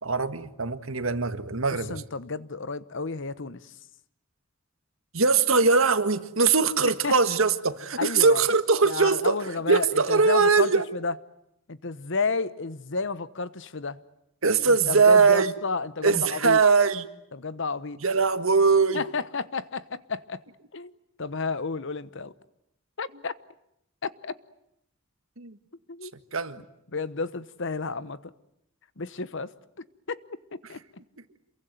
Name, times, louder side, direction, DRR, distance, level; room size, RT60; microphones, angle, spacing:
voice 1, 0.0-2.0 5.1-9.4 9.7-10.9 14.4-15.5 16.0-17.1 18.0-19.0 25.4-25.6 26.3-26.6, right 4 dB, 75° right, 1.8 m, -21 dB
voice 2, 1.9-3.7 7.0-7.1 8.0-8.4 8.8-11.2 11.7-14.0 14.6-16.6 17.3-18.0 18.9-20.4 20.7-20.9 21.2-22.3 23.0-23.3 24.0-24.3 25.9-26.1 26.6-26.7 26.9-28.3 29.0-29.5 29.8-30.2 30.5-30.8, left 4 dB, 65° left, 1.1 m, -31 dB
28.0 x 23.0 x 9.3 m
head